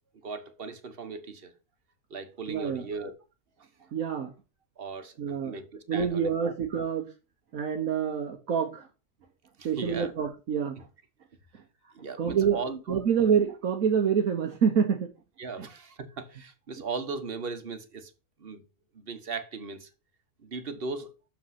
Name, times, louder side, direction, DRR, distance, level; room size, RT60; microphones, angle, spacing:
voice 1, 0.2-1.5 2.1-3.2 4.8-5.1 5.4-6.5 9.6-10.1 11.9-13.0 15.4-18.1 18.4-18.6 18.9-19.9 20.4-21.1, right 4 dB, 45° right, 1.3 m, -37 dB
voice 2, 2.5-2.9 3.9-4.3 5.2-5.6 5.9-7.1 7.5-8.9 9.6-10.8 12.2-12.6 12.9-15.1 15.6-15.7, right 7 dB, 85° right, 1.5 m, -27 dB
6.6 x 6.0 x 5.8 m
omnidirectional pair, 1.4 m